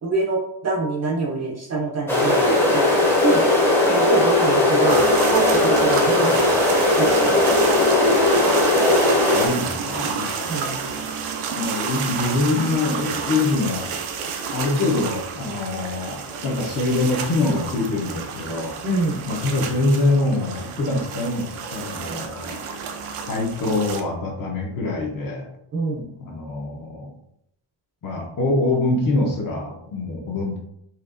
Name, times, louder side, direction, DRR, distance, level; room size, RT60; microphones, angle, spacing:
voice 1, 0.0-3.4 3.8-5.0 5.3-6.4 7.0-7.6 10.5-10.8 18.8-19.2 25.7-26.0, right 3 dB, 35° right, -1 dB, 0.6 m, -25 dB
sound 1, 2.1-9.5, left 2 dB, 5° left, 0.7 m, -18 dB
sound 2, 4.9-24.0, right 5 dB, 85° right, 0.6 m, -30 dB
voice 2, 9.3-10.5 11.6-13.9 14.5-18.7 19.2-21.5 21.7-22.6 23.3-25.5 26.2-27.1 28.0-30.6, left 2 dB, 40° left, 0 dB, 0.8 m, -24 dB
4.4 x 2.8 x 2.5 m, 0.77 s
cardioid pair, 160°, 50 cm